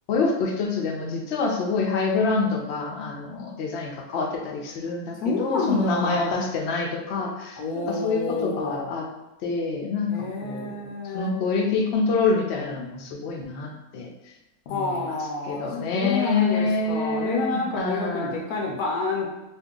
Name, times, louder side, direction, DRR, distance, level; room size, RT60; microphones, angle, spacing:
voice 1, 0.1-7.6 7.9-9.1 9.4-10.1 10.4-10.8 11.1-14.1 14.7-15.2 15.4-18.4, left 4 dB, 60° left, 1 dB, 0.7 m, -26 dB
voice 2, 5.2-6.4 7.6-8.9 10.1-11.3 14.7-19.3, left 3 dB, 85° left, -1 dB, 1.1 m, -29 dB
2.7 x 2.4 x 3.6 m, 0.98 s
omnidirectional pair, 1.5 m